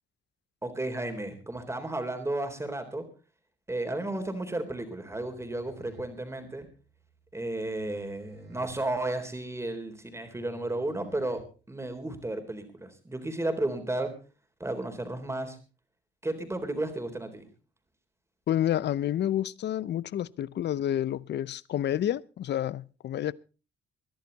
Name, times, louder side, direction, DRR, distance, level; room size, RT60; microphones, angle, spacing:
voice 1, 0.6-3.0 3.7-6.7 7.3-11.4 11.7-14.1 14.6-15.6 16.2-17.5, right 2 dB, 15° right, 3.9 m, -33 dB
sound 1, 5.0-12.0, right 1 dB, 60° right, 6.5 m, -54 dB
voice 2, 18.5-23.3, left 11 dB, 60° left, 0.7 m, -29 dB
22.0 x 11.5 x 4.1 m
cardioid pair, 90°, 20 cm